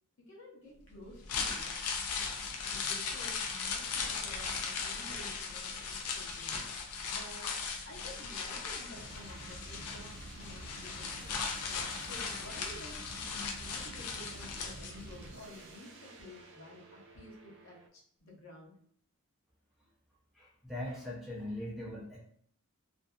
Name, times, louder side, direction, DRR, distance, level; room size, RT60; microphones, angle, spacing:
voice 1, 0.3-1.7 2.7-6.6 7.1-7.5 7.8-11.4 12.0-18.7, left 1 dB, 60° left, -2 dB, 0.8 m, -52 dB
sound 1, 1.1-15.3 15.6-15.7, left 5 dB, 80° left, 0.4 m, -38 dB
sound 2, 8.9-17.9, right 2 dB, 55° right, 0.4 m, -50 dB
voice 2, 20.3-22.2, left 1 dB, ahead, -6 dB, 0.5 m, -40 dB
2.6 x 2.4 x 2.3 m, 0.63 s
head